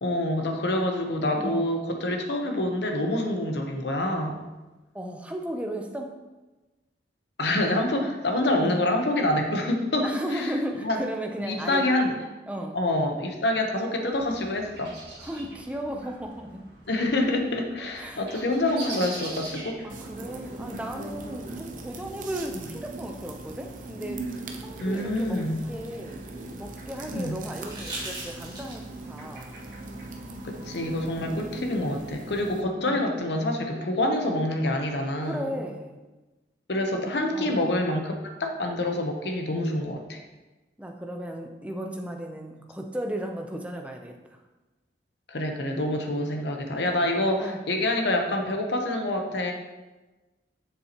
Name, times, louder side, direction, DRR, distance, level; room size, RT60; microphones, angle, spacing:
voice 1, 0.0-4.4 7.4-10.5 10.8-11.0 11.5-12.1 12.7-14.9 16.9-19.7 24.8-25.6 27.1-27.4 30.4-35.5 36.7-40.2 45.3-49.5, left 1 dB, 75° left, 3 dB, 0.9 m, -26 dB
voice 2, 1.4-1.7 4.9-6.1 8.6-8.8 10.0-11.8 12.5-12.8 15.2-16.6 18.0-18.4 18.9-19.2 19.8-24.2 24.6-25.4 25.7-26.2 26.5-29.5 31.2-31.5 32.8-33.1 35.2-36.0 37.3-37.6 40.8-44.1 47.4-47.6, equal, 5° right, 2 dB, 0.6 m, -35 dB
sound 1, 14.1-31.1, right 2 dB, 65° right, 1.9 m, -46 dB
sound 2, 19.9-32.6, right 2 dB, 45° right, 0.6 m, -40 dB
sound 3, 24.7-26.6 27.5-29.0 30.7-30.8, right 2 dB, 25° right, 1.8 m, -41 dB
7.2 x 6.7 x 2.9 m, 1.2 s
head